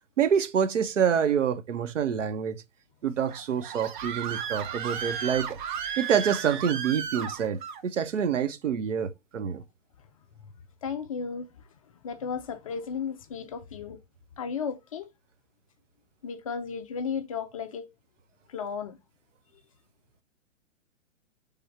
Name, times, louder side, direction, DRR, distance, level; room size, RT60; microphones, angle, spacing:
voice 1, 0.2-2.6 3.0-5.6 6.0-9.6, right 8 dB, 75° right, 0.7 m, -27 dB
Screaming, 3.3-7.8, right 8 dB, 40° right, 0.6 m, -34 dB
voice 2, 10.8-11.5 12.0-14.0 14.4-15.1 16.2-17.9 18.5-19.0, left 6 dB, 30° left, 0.4 m, -34 dB
3.5 x 3.4 x 4.2 m
figure-of-eight pair, 120°, 38 cm